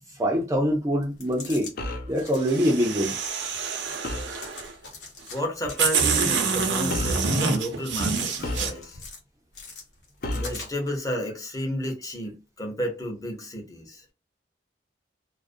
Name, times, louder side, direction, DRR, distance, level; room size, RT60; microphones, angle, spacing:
voice 1, 0.1-1.7 2.1-3.2 4.3-4.4 8.4-8.5, equal, 20° right, 0.4 m, -24 dB
sound 1, 1.0-1.7 2.1-2.5 3.0-4.0 4.4-5.4 5.7-7.5 7.9-9.2 9.5-11.0, left 4 dB, 75° left, 1.0 m, -44 dB
sound 2, 1.8-2.2 4.0-4.4 5.6-5.9 6.9-7.3 8.4-9.1 10.2-10.6, left 1 dB, 55° left, 0.5 m, -32 dB
sound 3, 2.4-4.7 5.4-5.5 5.8-8.7, right 5 dB, 90° right, 0.6 m, -26 dB
voice 2, 5.3-9.0 10.3-14.0, equal, 20° left, 0.7 m, -32 dB
2.4 x 2.0 x 2.5 m
head